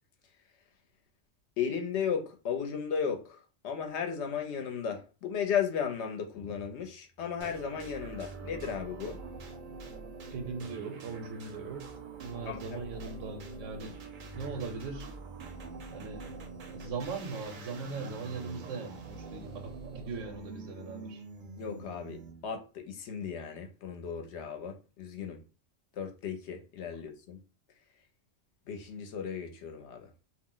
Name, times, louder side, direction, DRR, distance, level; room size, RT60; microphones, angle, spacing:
voice 1, 1.6-9.2 12.5-12.8 21.6-25.4 26.0-27.4 28.7-30.1, left 7 dB, 70° left, 0.8 m, -35 dB
sound 1, 7.4-22.5, right 4 dB, 55° right, 0.6 m, -45 dB
voice 2, 10.3-11.9 12.2-14.0 14.3-15.1 15.9-16.3 16.7-21.2, right 4 dB, 85° right, 1.0 m, -39 dB
2.4 x 2.0 x 3.7 m
omnidirectional pair, 1.3 m